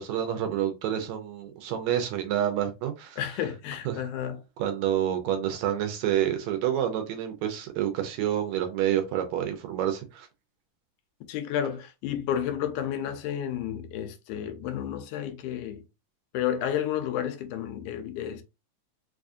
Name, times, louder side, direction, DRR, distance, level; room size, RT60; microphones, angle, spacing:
voice 1, 0.0-3.2 3.9-4.1 4.6-10.3, right 10 dB, 80° right, 1.8 m, -28 dB
voice 2, 3.2-4.4 11.3-15.8 16.3-18.4, left 10 dB, 85° left, 2.1 m, -31 dB
4.8 x 2.4 x 2.5 m
omnidirectional pair, 3.5 m